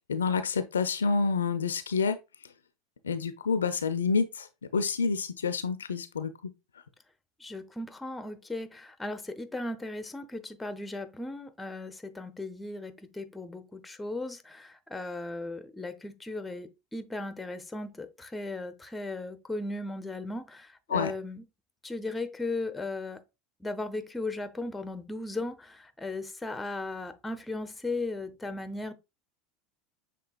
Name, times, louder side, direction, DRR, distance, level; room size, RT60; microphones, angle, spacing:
voice 1, 0.1-2.2 3.0-4.5 4.7-6.3 20.9-21.1, left 5 dB, 80° left, 0.4 m, -28 dB
voice 2, 7.4-21.4 21.8-23.2 23.6-28.9, left 2 dB, 10° left, 0.6 m, -37 dB
6.7 x 3.3 x 2.4 m
figure-of-eight pair, 80°, 0 cm